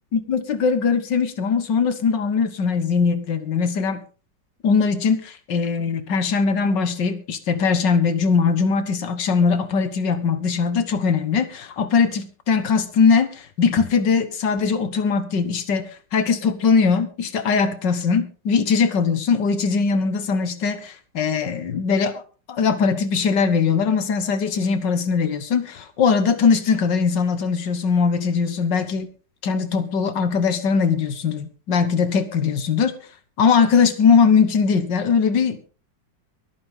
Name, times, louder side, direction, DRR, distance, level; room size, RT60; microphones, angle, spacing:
voice 1, 0.1-4.0 4.6-22.2 22.5-29.1 29.4-32.9 33.4-35.7, left 5 dB, 70° left, 11 dB, 2.0 m, -20 dB
23.5 x 8.8 x 3.7 m, 0.35 s
omnidirectional pair, 2.0 m